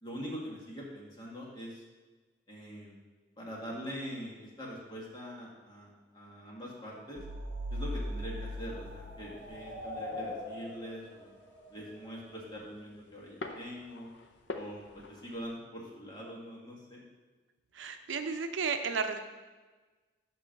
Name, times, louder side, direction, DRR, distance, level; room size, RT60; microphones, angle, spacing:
voice 1, 0.0-1.8 2.5-2.9 3.4-7.2 7.7-11.3 11.7-14.1 14.5-17.1, equal, 25° left, -4 dB, 1.6 m, -43 dB
sound 1, 6.9-12.6, left 2 dB, 15° right, 1.9 m, -45 dB
sound 2, 7.2-9.8, equal, 65° right, 1.1 m, -39 dB
sound 3, 9.4-15.5, left 2 dB, 65° left, 0.6 m, -48 dB
voice 2, 17.7-19.2, right 5 dB, 80° right, 7 dB, 0.6 m, -33 dB
8.7 x 3.1 x 6.4 m, 1.3 s
head